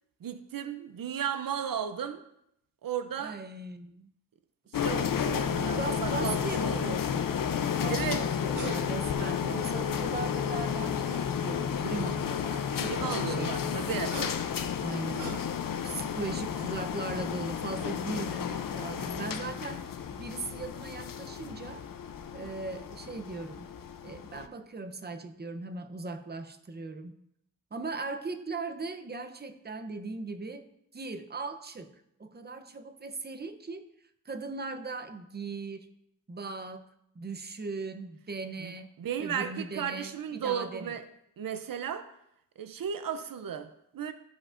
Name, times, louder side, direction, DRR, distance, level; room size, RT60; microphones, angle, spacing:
voice 1, 0.2-2.2 2.8-3.4 4.7-7.0 7.9-8.3 12.7-14.2 38.6-38.7 39.0-41.0 41.4-42.1 42.6-44.1, right 8 dB, 85° right, 10 dB, 0.5 m, -35 dB
voice 2, 3.2-4.1 5.6-7.2 7.6-12.7 13.0-13.7 14.8-15.4 15.8-21.8 22.3-23.7 24.0-27.1 27.7-30.6 30.9-33.9 34.3-35.9 36.3-36.9 37.2-38.9 39.2-40.9, right 3 dB, 30° right, 8 dB, 0.7 m, -39 dB
sound 1, 4.7-24.5, left 8 dB, 80° left, 0.5 m, -32 dB
sound 2, 8.5-8.8 9.2-10.0 11.0-11.7 13.8-15.8 16.3-16.5, right 1 dB, 65° right, 1.7 m, -41 dB
13.0 x 5.1 x 2.5 m, 0.77 s
wide cardioid pair, 60°, 33 cm